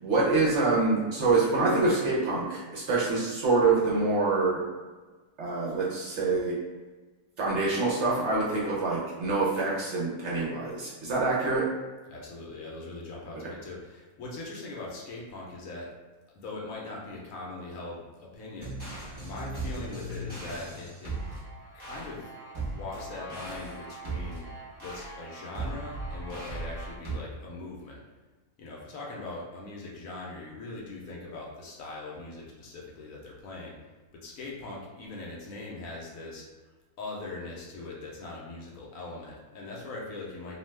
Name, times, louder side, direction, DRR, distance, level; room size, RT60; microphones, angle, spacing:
voice 1, 0.0-4.6 5.4-6.6 7.4-11.7, right 3 dB, 60° right, -6 dB, 0.8 m, -26 dB
voice 2, 12.1-15.9 16.3-18.7 19.2-21.1 21.7-22.3 22.7-24.5 24.8-28.0 28.6-33.8 34.1-36.4 37.0-40.6, left 2 dB, 70° left, -3 dB, 0.9 m, -41 dB
sound 1, 18.6-27.2, right 2 dB, 25° right, 0.5 m, -38 dB
2.6 x 2.2 x 3.1 m, 1.3 s
omnidirectional pair, 1.6 m